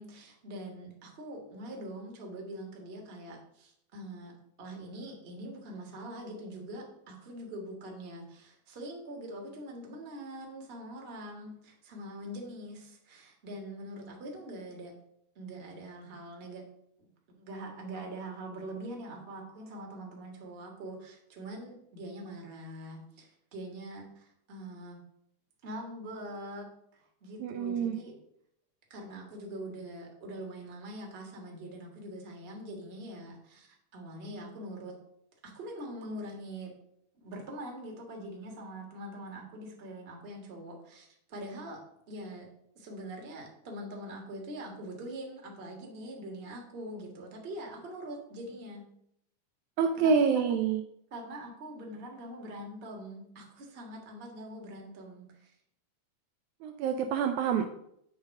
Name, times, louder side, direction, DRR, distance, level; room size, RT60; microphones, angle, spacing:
voice 1, 0.0-14.9 15.3-16.6 17.0-25.0 25.6-28.1 28.9-35.0 35.4-36.7 37.1-42.5 42.7-48.9 50.0-50.5 51.1-55.5, right 1 dB, 30° right, 0 dB, 1.1 m, -43 dB
voice 2, 27.4-28.0 49.8-50.8 56.6-57.7, right 6 dB, 80° right, 5 dB, 1.8 m, -27 dB
8.2 x 3.7 x 6.3 m, 0.73 s
omnidirectional pair, 3.7 m